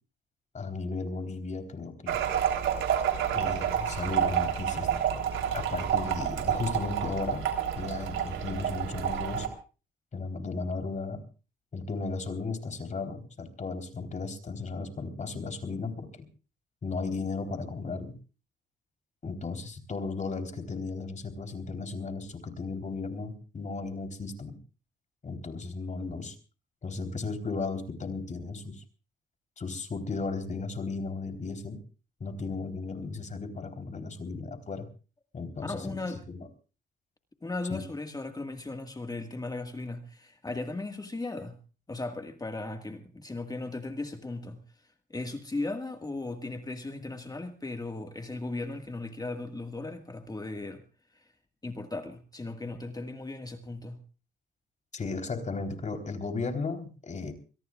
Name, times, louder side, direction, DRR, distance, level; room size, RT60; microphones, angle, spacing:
voice 1, 0.5-2.2 3.3-5.2 5.5-7.5 7.8-9.5 10.1-11.2 11.7-16.3 16.8-18.2 19.2-24.6 25.2-26.4 26.8-28.8 29.6-31.8 32.2-34.9 35.3-36.0 36.3-36.5 37.7-37.8 54.9-57.3, left 4 dB, 40° left, 6 dB, 3.7 m, -35 dB
sound 1, 2.1-9.5, right 9 dB, 85° right, 3.5 m, -29 dB
voice 2, 35.6-36.2 37.4-41.6 41.9-44.6 45.1-50.8 51.1-51.3 51.6-54.0, left 2 dB, 20° left, 6 dB, 1.7 m, -37 dB
23.0 x 22.5 x 2.4 m, 0.36 s
cardioid pair, 90°, 20 cm